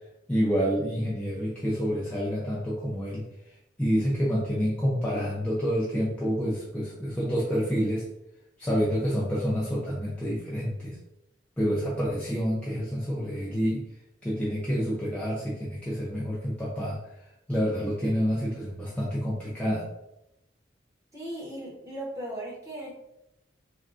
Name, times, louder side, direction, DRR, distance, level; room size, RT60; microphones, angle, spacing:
voice 1, 0.3-3.2 3.8-8.0 8.6-11.0 11.6-13.8 14.2-17.0 17.5-19.9, equal, 5° left, -8 dB, 0.5 m, -28 dB
voice 2, 21.1-22.9, right 1 dB, 15° right, -5 dB, 0.9 m, -37 dB
3.5 x 2.3 x 2.4 m, 0.86 s
head